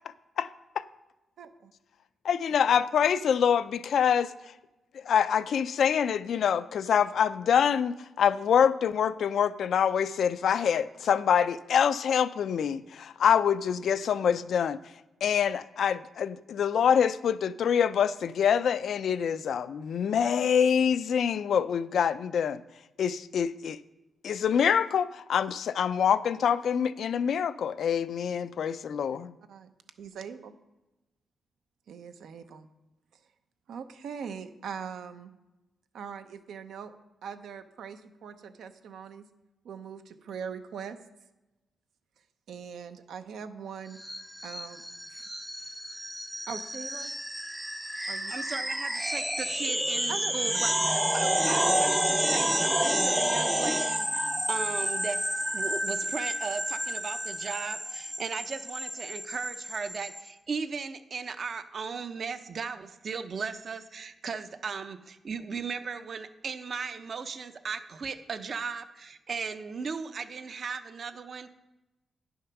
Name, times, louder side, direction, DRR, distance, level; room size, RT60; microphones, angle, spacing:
voice 1, 1.4-1.7 29.5-29.7 30.0-30.5 31.9-32.7 33.7-35.3 35.9-36.9 37.2-39.2 39.6-41.0 42.5-44.0 44.4-44.8 45.1-45.3 46.5-47.1 48.1-48.3 50.1-50.3, right 7 dB, 80° right, 9 dB, 0.8 m, -41 dB
voice 2, 2.2-4.3 5.1-14.8 15.2-22.6 23.0-23.8 24.2-29.3, left 8 dB, 65° left, 15 dB, 0.4 m, -25 dB
sound 1, 44.0-60.2, equal, 5° right, 0.5 m, -30 dB
voice 3, 48.0-71.5, right 5 dB, 45° right, 10 dB, 0.6 m, -37 dB
10.0 x 6.5 x 5.9 m, 1.0 s
cardioid pair, 125°, 0 cm